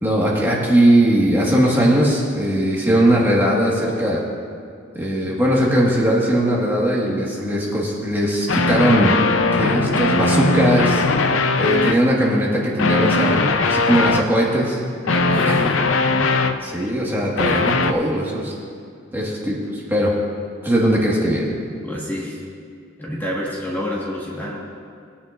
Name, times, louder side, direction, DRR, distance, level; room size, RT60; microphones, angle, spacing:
voice 1, 0.0-4.2 5.0-9.1 9.5-14.8 15.5-15.6 16.3-18.5 19.1-20.1 20.6-21.5, right 1 dB, 10° right, -4 dB, 1.6 m, -19 dB
sound 1, 8.5-12.0 12.8-14.3 15.1-16.8 17.4-17.9, left 3 dB, 85° left, 0.6 m, -19 dB
voice 2, 15.0-15.6 20.8-21.0 21.8-22.4 23.0-24.6, left 1 dB, 10° left, -5 dB, 1.6 m, -28 dB
20.5 x 9.9 x 2.6 m, 2.3 s
head